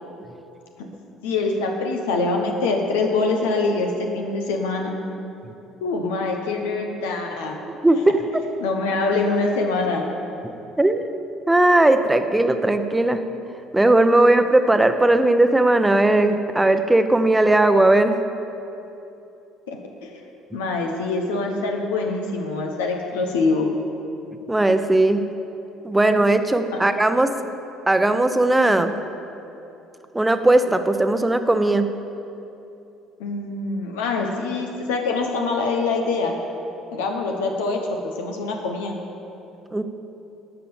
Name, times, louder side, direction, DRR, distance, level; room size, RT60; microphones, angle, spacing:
voice 1, 1.2-5.0 5.8-7.6 8.6-10.0 19.7-20.1 20.5-23.7 26.7-26.8 33.2-36.3 36.9-37.8 38.2-39.0, left 3 dB, 80° left, 2 dB, 1.0 m, -24 dB
voice 2, 7.8-8.2 10.8-11.1 11.5-13.2 13.7-18.2 24.5-25.3 25.8-27.3 27.9-28.9 30.1-31.9 39.7-39.8, right 2 dB, 10° right, 8 dB, 0.8 m, -18 dB
12.5 x 5.9 x 7.1 m, 2.9 s
hypercardioid pair, 60°, 0 cm